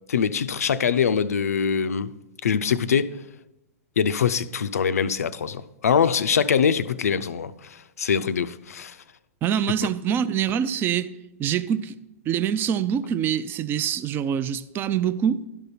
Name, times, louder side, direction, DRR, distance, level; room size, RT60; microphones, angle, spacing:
voice 1, 0.1-2.1 2.4-3.1 4.0-9.0, left 7 dB, 80° left, 0.4 m, -23 dB
voice 2, 9.4-11.1 11.4-12.0 12.3-15.4, right 9 dB, 25° right, 0.4 m, -25 dB
12.0 x 5.4 x 4.3 m
hypercardioid pair, 115°, 8 cm